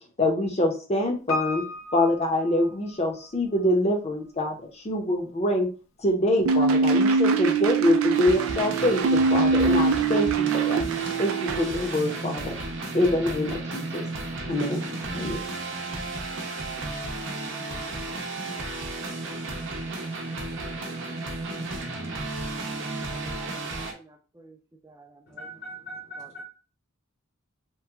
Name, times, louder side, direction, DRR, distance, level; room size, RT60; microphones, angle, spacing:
voice 1, 0.2-1.7 1.9-5.7 6.0-10.8 11.2-12.6 12.9-14.1 14.5-14.9 15.1-15.4, left 1 dB, 30° left, 2 dB, 0.7 m, -25 dB
Piano, 1.3-3.3 3.6-3.7, left 1 dB, 85° left, 0.5 m, -34 dB
sound 1, 6.5-11.6, right 4 dB, 80° right, 0.3 m, -23 dB
sound 2, 8.1-23.9, right 2 dB, 65° right, 0.7 m, -33 dB
voice 2, 23.1-24.6 24.8-25.5 26.2-26.4, right 2 dB, 15° right, 4 dB, 0.4 m, -52 dB
voice 3, 25.4-26.4, right 1 dB, 55° left, -5 dB, 1.0 m, -40 dB
3.0 x 2.2 x 3.4 m, 0.36 s
head